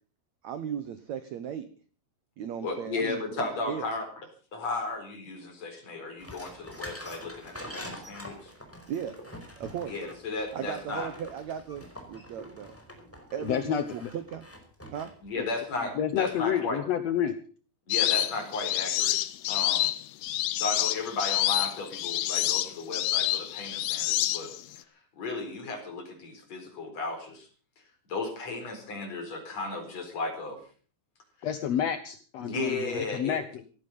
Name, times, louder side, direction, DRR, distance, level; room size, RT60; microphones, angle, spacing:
voice 1, 0.4-1.7 2.4-3.9 8.9-9.2 9.6-9.9 10.5-12.7 13.3-14.5 14.9-15.1, right 8 dB, 70° right, 12 dB, 1.7 m, -36 dB
voice 2, 2.6-4.1 4.5-8.5 9.9-11.1 15.2-16.8 17.9-19.2 19.5-19.9 20.6-24.9 25.2-27.5 28.1-30.6 31.4-31.5 32.4-33.6, left 3 dB, 40° left, 5 dB, 5.4 m, -35 dB
sound 1, 6.2-15.8, equal, 5° left, 4.6 m, -45 dB
voice 3, 13.4-14.1 15.4-15.5 16.0-17.4 31.4-33.4, left 9 dB, 70° left, 10 dB, 1.6 m, -29 dB
sound 2, 17.9-24.8, left 14 dB, 85° left, 3.0 m, -28 dB
17.5 x 15.5 x 5.4 m, 0.41 s
omnidirectional pair, 4.6 m